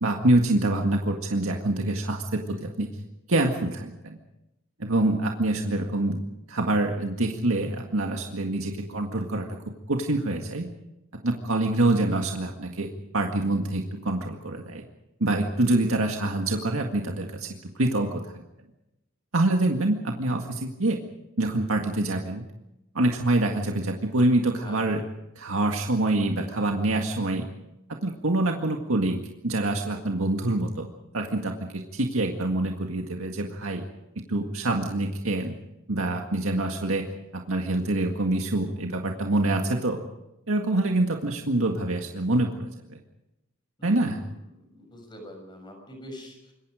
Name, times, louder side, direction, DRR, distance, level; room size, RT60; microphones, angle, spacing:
voice 1, 0.0-2.9 3.3-4.2 4.8-6.2 6.5-9.5 9.9-10.7 11.2-14.9 15.2-18.4 19.3-21.0 21.4-22.4 22.9-25.0 25.4-27.5 28.0-30.9 31.1-33.8 34.3-35.6 35.9-37.1 37.5-40.0 40.5-43.0 43.8-44.2, right 2 dB, 90° right, 2 dB, 1.9 m, -26 dB
voice 2, 43.8-44.3 44.6-46.5, equal, 20° left, 4 dB, 6.5 m, -44 dB
26.5 x 22.5 x 5.0 m, 0.90 s
head